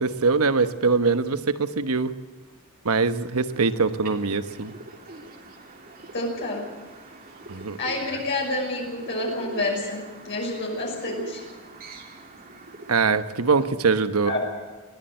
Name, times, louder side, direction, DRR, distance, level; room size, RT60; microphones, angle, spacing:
voice 1, 0.0-2.1 2.8-4.7 7.5-7.8 12.9-14.3, right 4 dB, 90° right, 11 dB, 1.2 m, -23 dB
sound 1, 3.5-12.9, right 2 dB, 45° right, 3.2 m, -43 dB
voice 2, 6.1-6.7 7.8-11.4 14.3-14.4, left 2 dB, 55° left, -1 dB, 6.0 m, -28 dB
21.5 x 16.5 x 7.8 m, 1.4 s
head